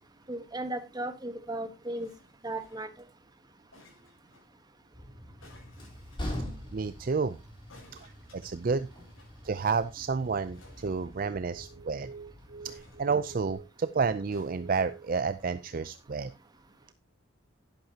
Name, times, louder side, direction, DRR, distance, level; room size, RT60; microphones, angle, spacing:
voice 1, 0.3-2.1 2.4-2.9, right 1 dB, 20° right, 1.2 m, -35 dB
sound 1, 1.9-3.0 3.7-4.5 5.4-6.5 7.7-9.4 9.7-9.8 10.0-10.1 10.5-11.7 12.6-13.6 14.3-15.3 16.0-16.1, left 2 dB, 85° left, 7.2 m, -59 dB
Train, 4.9-13.5, left 1 dB, 25° left, 3.8 m, -44 dB
voice 2, 6.7-7.4 8.0-8.9 9.4-16.3, right 5 dB, 45° right, 0.4 m, -31 dB
11.5 x 10.5 x 2.8 m
head